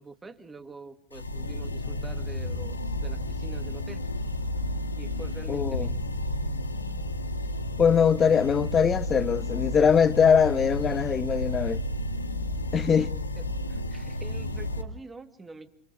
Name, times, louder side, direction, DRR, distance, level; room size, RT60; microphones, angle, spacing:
voice 1, 0.0-4.0 5.0-6.0 12.9-13.1 13.4-15.7, right 3 dB, 10° right, 2.3 m, -45 dB
sound 1, 1.1-14.8, left 1 dB, 75° left, 2.2 m, -32 dB
voice 2, 5.5-5.9 7.8-11.8 12.7-13.1, left 7 dB, 20° left, 0.8 m, -22 dB
30.0 x 29.5 x 3.5 m
figure-of-eight pair, 90°, 0 cm